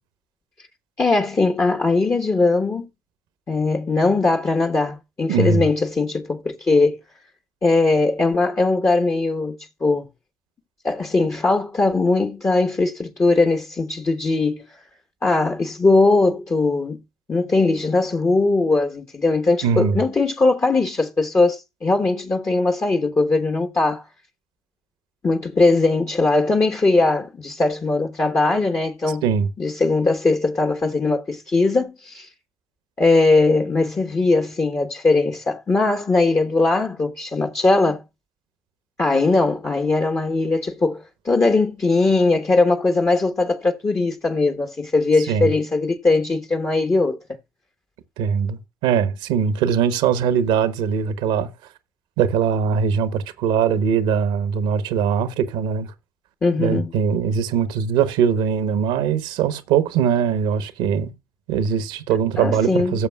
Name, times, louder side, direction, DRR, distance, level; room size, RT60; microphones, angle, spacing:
voice 1, 1.0-2.9 3.5-7.0 7.6-10.1 10.8-14.7 15.2-17.0 17.3-24.0 25.2-29.2 29.6-32.3 33.0-38.0 39.0-47.2 56.4-56.9 62.4-63.0, left 3 dB, 35° left, 1.4 m, -20 dB
voice 2, 5.3-5.6 19.6-20.0 29.2-29.5 45.3-45.5 48.2-51.5 52.2-55.9 56.6-61.1 61.5-63.1, right 7 dB, 80° right, 1.2 m, -21 dB
17.0 x 7.1 x 2.4 m
hypercardioid pair, 50°, 8 cm